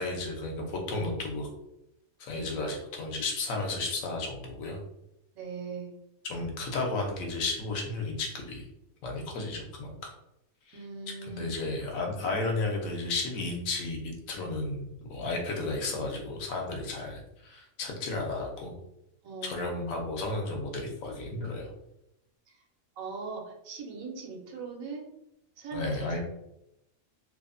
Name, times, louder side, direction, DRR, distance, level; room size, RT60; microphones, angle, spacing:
voice 1, 0.0-1.5 2.2-4.8 6.2-8.7 9.0-9.9 10.7-10.8 11.3-18.8 19.4-21.7 25.7-26.2, left 2 dB, 80° left, 1 dB, 1.1 m, -33 dB
voice 2, 5.3-5.9 10.7-11.5 19.2-19.8 22.5-22.6 23.0-25.1 25.6-26.2, right 4 dB, 90° right, 0 dB, 1.1 m, -40 dB
2.9 x 2.0 x 2.5 m, 0.86 s
omnidirectional pair, 1.4 m